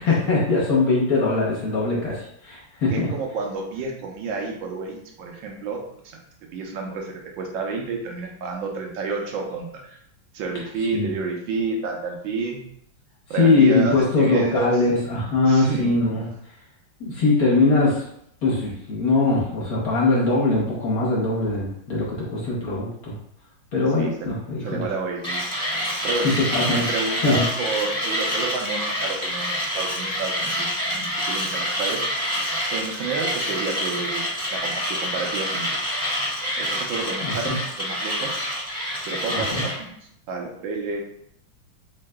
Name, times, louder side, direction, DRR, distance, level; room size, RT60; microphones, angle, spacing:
voice 1, 0.0-2.2 2.4-3.1 10.9-11.1 13.3-16.3 17.0-18.0 18.4-23.1 23.7-24.4 24.7-24.8 26.2-26.8 27.2-27.4 37.2-37.6 39.3-39.6, left 3 dB, 55° left, -4 dB, 1.2 m, -21 dB
voice 2, 2.9-6.2 6.5-10.0 10.3-12.6 13.3-14.8 15.4-15.9 24.0-24.3 24.6-25.4 26.0-26.3 26.7-32.0 32.7-35.8 36.6-38.4 39.1-39.9 40.3-41.0, right 4 dB, 80° right, 1 dB, 1.5 m, -30 dB
Mechanisms, 25.2-39.8, equal, 5° left, 0.8 m, -27 dB
3.9 x 3.7 x 2.2 m, 0.73 s
omnidirectional pair, 2.1 m